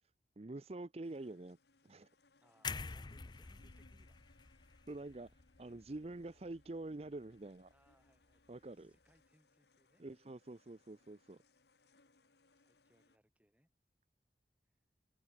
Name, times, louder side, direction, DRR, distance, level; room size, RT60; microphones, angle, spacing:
voice 1, 0.4-1.6 1.8-2.1 4.9-7.7 8.5-8.9 10.0-11.4, right 2 dB, 35° right, 0.6 m, -47 dB
sound 1, 1.0-13.2, left 3 dB, 70° left, 1.6 m, -72 dB
voice 2, 2.4-4.2 7.7-8.4 8.7-10.0 12.2-13.7, equal, 10° right, 3.8 m, -72 dB
sound 2, 2.6-6.7 7.0-7.2, left 5 dB, 25° left, 0.5 m, -48 dB
head